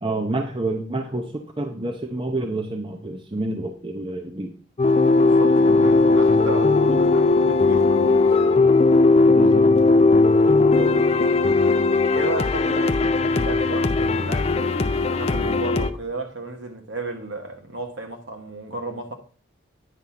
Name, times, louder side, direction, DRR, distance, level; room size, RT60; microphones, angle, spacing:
voice 1, 0.0-4.5 9.2-9.7, right 2 dB, 25° right, 0.6 m, -28 dB
sound 1, 4.8-15.9, left 3 dB, 30° left, 0.4 m, -18 dB
voice 2, 4.9-8.6 10.4-11.6 12.1-19.1, right 2 dB, 65° right, 1.2 m, -34 dB
9.0 x 3.6 x 5.8 m
head